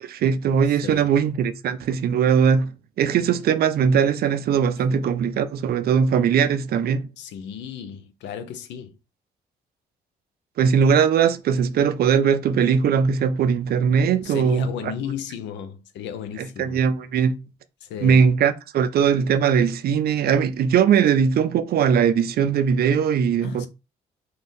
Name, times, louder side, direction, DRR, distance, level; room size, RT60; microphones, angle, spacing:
voice 1, 0.0-7.1 10.6-14.7 16.4-17.4 18.0-23.7, right 7 dB, 60° right, 0.4 m, -20 dB
voice 2, 0.7-1.1 4.8-4.9 7.2-9.0 14.2-16.8 17.8-18.3 23.4-23.7, left 8 dB, 80° left, 0.5 m, -35 dB
2.5 x 2.3 x 3.5 m
supercardioid pair, 65°, 18 cm